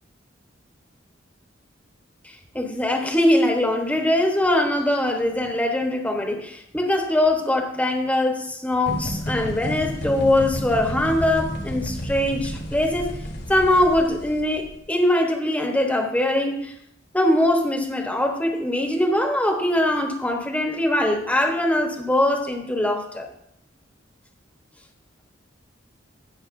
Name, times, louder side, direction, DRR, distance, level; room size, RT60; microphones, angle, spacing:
voice 1, 2.2-13.1 13.5-16.7 17.1-23.3, left 1 dB, 10° left, 3 dB, 1.0 m, -22 dB
sound 1, 8.9-14.7, equal, 55° left, 1.3 m, -31 dB
17.5 x 6.2 x 2.6 m, 0.78 s
head